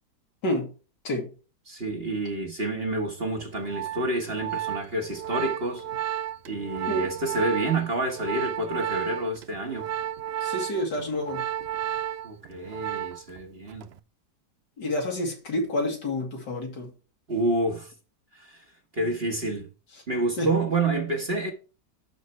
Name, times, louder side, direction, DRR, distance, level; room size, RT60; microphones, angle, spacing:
voice 1, 1.7-5.8 6.5-9.9 12.2-13.9 17.3-17.9 18.3-18.6 18.9-19.7 20.1-21.5, right 2 dB, 35° right, 1.6 m, -28 dB
Organ, 3.4-13.4 13.7-14.0, right 11 dB, 85° right, 0.5 m, -33 dB
voice 2, 10.4-11.5 14.8-16.9 20.4-20.5, left 1 dB, 80° left, 3.1 m, -29 dB
12.0 x 4.4 x 3.2 m
omnidirectional pair, 1.8 m